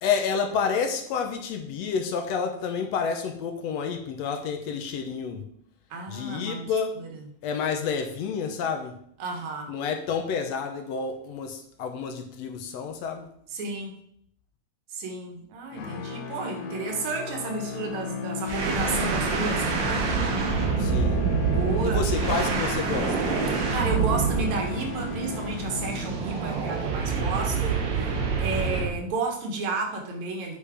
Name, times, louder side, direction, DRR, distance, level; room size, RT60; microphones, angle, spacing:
voice 1, 0.0-5.5 6.1-7.0 7.4-9.0 9.7-13.3 20.8-21.3 21.8-23.3, left 6 dB, 70° left, 5 dB, 1.9 m, -29 dB
voice 2, 5.9-6.7 9.2-9.7 13.5-14.0 14.9-20.1 21.5-22.2 23.7-27.8 28.4-30.6, right 3 dB, 75° right, 2 dB, 2.6 m, -32 dB
sound 1, 15.7-26.5, left 6 dB, 85° left, 1.1 m, -35 dB
sound 2, 18.4-29.0, right 5 dB, 50° right, 1.6 m, -26 dB
8.4 x 5.3 x 5.0 m, 0.67 s
omnidirectional pair, 3.3 m